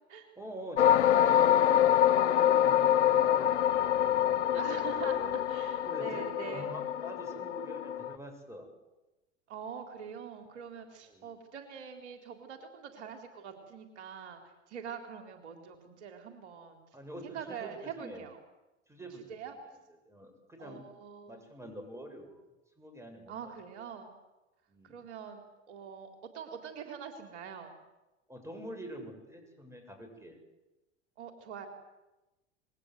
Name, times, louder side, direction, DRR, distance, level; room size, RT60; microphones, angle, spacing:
voice 1, 0.4-1.8 2.2-5.3 5.9-8.7 11.1-11.3 16.9-18.2 18.9-19.2 20.0-20.8 21.3-22.4 22.8-23.5 24.7-25.0 28.3-30.4, equal, 5° right, 5 dB, 7.5 m, -45 dB
sound 1, 0.8-8.1, left 10 dB, 70° left, 0.9 m, -26 dB
voice 2, 4.5-6.7 9.5-16.8 17.2-18.4 19.1-19.5 20.6-21.4 23.3-24.1 24.8-27.7 31.2-31.7, right 7 dB, 65° right, 5 dB, 3.7 m, -44 dB
27.0 x 21.5 x 8.1 m, 1.0 s
hypercardioid pair, 90°, 36 cm